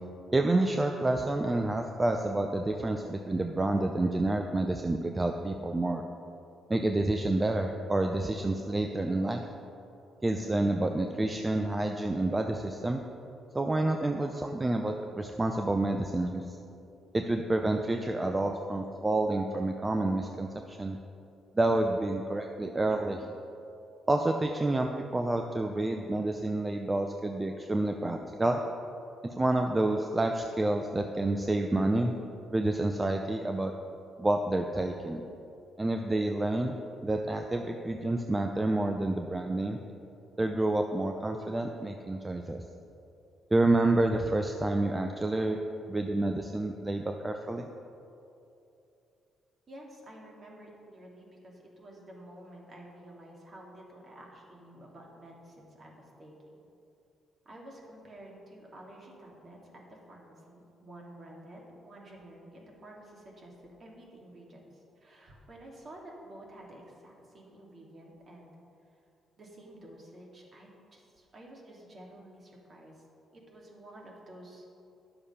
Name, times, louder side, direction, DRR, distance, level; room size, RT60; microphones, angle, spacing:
voice 1, 0.3-6.0 6.7-9.4 10.2-13.0 13.5-16.6 17.1-21.0 21.6-23.3 24.1-28.6 29.2-32.1 32.5-33.7 34.2-35.2 35.8-36.8 37.0-39.8 40.4-42.6 43.5-45.6 45.9-47.7, right 2 dB, 20° right, 4 dB, 0.6 m, -29 dB
voice 2, 49.7-56.3 57.4-68.5 69.4-73.0 73.3-74.7, right 1 dB, 40° right, -2 dB, 2.3 m, -50 dB
11.0 x 6.9 x 5.6 m, 2.7 s
cardioid pair, 90°, 0 cm